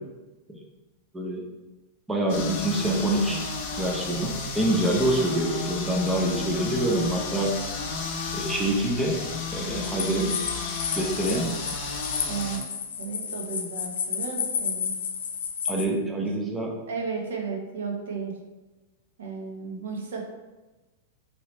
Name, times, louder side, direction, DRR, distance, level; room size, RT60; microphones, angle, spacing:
voice 1, 2.1-3.4 3.8-7.6 8.3-9.2 9.5-10.4 11.0-11.6 15.7-16.7, right 1 dB, 10° right, -1 dB, 0.4 m, -26 dB
sound 1, 2.3-12.6, left 4 dB, 50° left, 0.6 m, -33 dB
sound 2, 9.8-15.9, left 7 dB, 90° left, 0.4 m, -32 dB
voice 2, 12.3-12.7 13.0-14.9 16.2-16.3 16.9-18.4 19.2-20.2, right 5 dB, 85° right, 1 dB, 0.7 m, -34 dB
3.1 x 2.8 x 3.0 m, 1.1 s
supercardioid pair, 150°, 0 cm